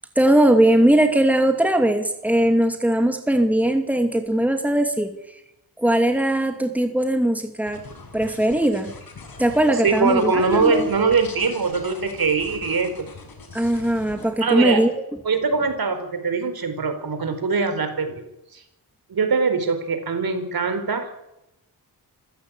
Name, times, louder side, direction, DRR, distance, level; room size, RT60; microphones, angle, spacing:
voice 1, 0.2-5.1 5.8-7.8 8.1-8.9 9.4-10.9 13.5-14.9, right 1 dB, 5° right, 5 dB, 2.6 m, -19 dB
sound 1, 7.6-14.3, left 4 dB, 65° left, 6.1 m, -42 dB
voice 2, 9.7-12.9 14.4-14.8 15.2-18.2 18.5-18.6 19.1-21.1, right 4 dB, 65° right, 8 dB, 4.5 m, -22 dB
26.5 x 16.0 x 8.9 m, 0.88 s
wide cardioid pair, 110°, 39 cm